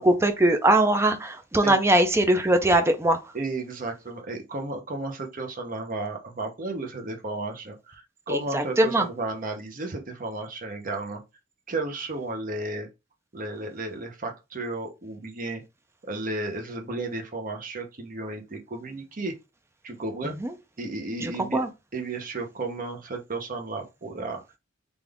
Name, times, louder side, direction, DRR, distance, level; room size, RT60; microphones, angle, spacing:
voice 1, 0.0-3.3 8.3-9.1 20.2-20.5 21.2-21.7, right 1 dB, 15° right, 0.4 m, -21 dB
voice 2, 3.3-11.2 11.7-12.9 13.3-15.6 16.0-19.3 19.8-20.3 20.8-21.6 21.9-24.4, right 2 dB, 45° right, 0.8 m, -33 dB
3.5 x 2.5 x 3.4 m
head